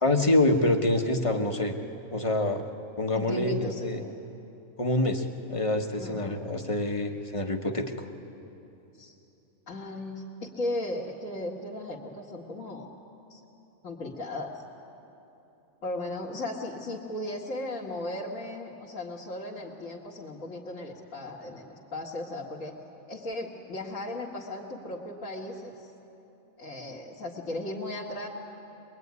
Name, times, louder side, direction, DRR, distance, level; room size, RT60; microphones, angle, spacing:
voice 1, 0.0-1.8 2.1-2.6 3.0-4.0 4.8-8.1, left 2 dB, 25° left, 4 dB, 1.3 m, -26 dB
voice 2, 3.2-4.1 6.0-6.3 8.9-9.1 9.7-13.0 13.3-13.4 13.8-14.6 15.8-22.8 23.1-25.9 26.6-28.3, left 1 dB, 65° left, -5 dB, 2.3 m, -36 dB
23.0 x 22.5 x 9.6 m, 2.9 s
omnidirectional pair, 1.5 m